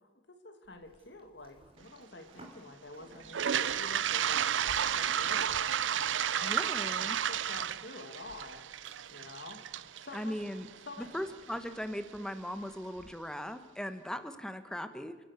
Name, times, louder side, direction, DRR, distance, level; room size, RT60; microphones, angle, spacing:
voice 1, 0.0-6.6 7.0-10.4 10.8-11.1, left 2 dB, 65° left, 8 dB, 2.1 m, -49 dB
Livestock farm animals working animals, 0.6-13.1, right 1 dB, 30° right, 3.2 m, -58 dB
Toilet flush, 3.2-11.2, right 9 dB, 80° right, 0.6 m, -32 dB
voice 2, 6.4-7.2 10.1-10.7 11.0-15.2, equal, 5° left, 9 dB, 1.0 m, -39 dB
30.0 x 10.5 x 8.1 m, 1.4 s
head